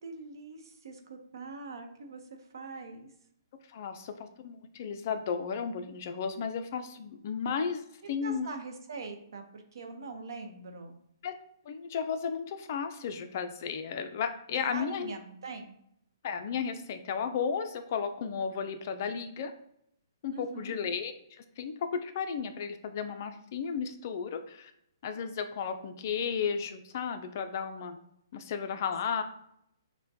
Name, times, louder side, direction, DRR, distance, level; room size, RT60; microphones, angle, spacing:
voice 1, 0.0-3.1 8.2-11.0 14.5-15.7 20.3-20.8 29.0-29.2, right 3 dB, 70° right, 5 dB, 0.8 m, -43 dB
voice 2, 3.7-8.5 11.2-11.3 11.7-15.1 16.2-19.5 20.2-24.7 25.0-28.0 28.3-29.2, left 6 dB, 40° left, 8 dB, 0.4 m, -34 dB
5.9 x 2.1 x 2.7 m, 0.73 s
hypercardioid pair, 160°, 2 cm